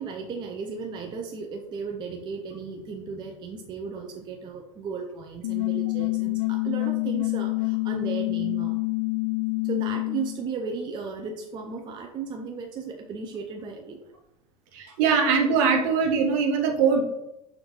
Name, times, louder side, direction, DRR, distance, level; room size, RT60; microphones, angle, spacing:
voice 1, 0.0-8.8 9.6-14.1, right 5 dB, 25° right, 2 dB, 0.4 m, -35 dB
sound 1, 5.4-10.4, left 30 dB, 50° left, 0.6 m, -27 dB
voice 2, 14.7-17.0, right 5 dB, 50° right, 1 dB, 1.0 m, -22 dB
6.1 x 2.5 x 2.9 m, 0.87 s
figure-of-eight pair, 80°, 20 cm